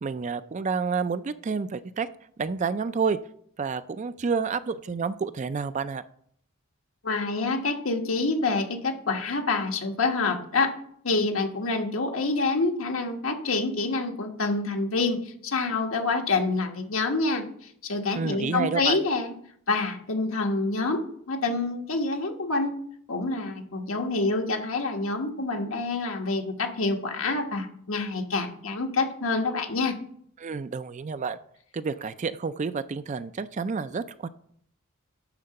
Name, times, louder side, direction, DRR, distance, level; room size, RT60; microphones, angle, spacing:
voice 1, 0.0-2.1 2.4-3.2 3.6-6.0 18.1-19.0 30.4-31.4 31.7-34.3, right 5 dB, 35° right, 13 dB, 0.4 m, -29 dB
voice 2, 7.0-10.7 11.0-17.5 17.8-19.4 19.7-21.0 21.3-22.7 23.1-30.0, left 3 dB, 80° left, 3 dB, 1.3 m, -27 dB
11.0 x 3.8 x 6.6 m, 0.65 s
head